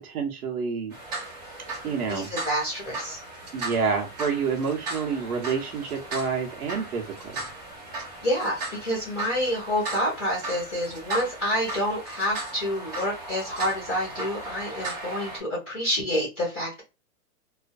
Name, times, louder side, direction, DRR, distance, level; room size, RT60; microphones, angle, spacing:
voice 1, 0.1-0.9 1.8-2.3 3.5-7.4, right 5 dB, 75° right, 1.0 m, -28 dB
sound 1, 0.9-15.4, right 2 dB, 25° right, 0.8 m, -37 dB
voice 2, 2.1-3.2 8.2-16.8, equal, 5° left, 0.5 m, -28 dB
2.4 x 2.1 x 2.4 m
hypercardioid pair, 170°, 45 cm